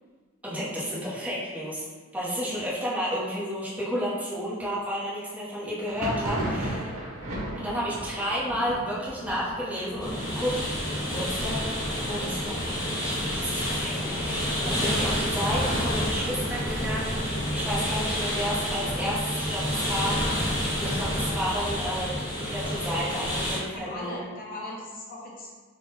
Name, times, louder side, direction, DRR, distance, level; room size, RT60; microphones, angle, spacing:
voice 1, 0.4-1.8 2.1-6.9 7.6-10.5 11.1-11.7 12.0-20.2 20.8-24.2, equal, 5° right, -9 dB, 1.0 m, -31 dB
Thunder, 5.8-15.3 15.6-16.3 16.5-17.5 17.9-19.6, right 1 dB, 90° right, 0.9 m, -38 dB
sound 1, 10.0-23.6, equal, 20° left, 0.9 m, -29 dB
voice 2, 15.0-15.4 23.7-25.5, left 1 dB, 45° left, -4 dB, 0.9 m, -39 dB
3.7 x 2.4 x 3.9 m, 1.4 s
head